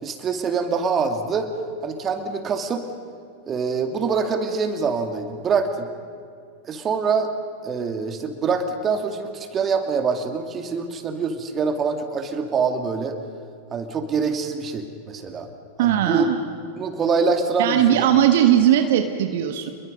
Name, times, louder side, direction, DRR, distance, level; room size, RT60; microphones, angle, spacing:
voice 1, 0.0-1.5 1.8-2.8 3.4-5.9 6.6-7.3 7.6-13.2 13.7-15.5 15.8-16.3 16.8-18.0, right 5 dB, 30° right, 6 dB, 2.4 m, -25 dB
voice 2, 15.8-16.4 17.6-19.7, right 11 dB, 65° right, 6 dB, 1.4 m, -18 dB
28.5 x 22.0 x 5.3 m, 2.3 s
hypercardioid pair, 95°, 0 cm